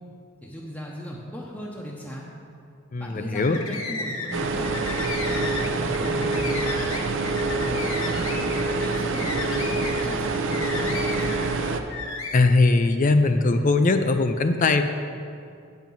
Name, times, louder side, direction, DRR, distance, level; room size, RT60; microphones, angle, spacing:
voice 1, 0.4-2.3 3.0-4.6 5.2-7.0 7.6-8.4 8.8-11.3, equal, 5° left, -4 dB, 0.8 m, -37 dB
voice 2, 2.9-3.6 12.3-14.9, left 3 dB, 35° left, 8 dB, 0.4 m, -20 dB
sound 1, 3.3-4.4 4.6-11.6 11.9-12.4, left 4 dB, 65° left, 1.1 m, -33 dB
sound 2, 4.3-11.8, right 3 dB, 55° right, 0.6 m, -26 dB
8.9 x 5.5 x 7.5 m, 2.4 s
head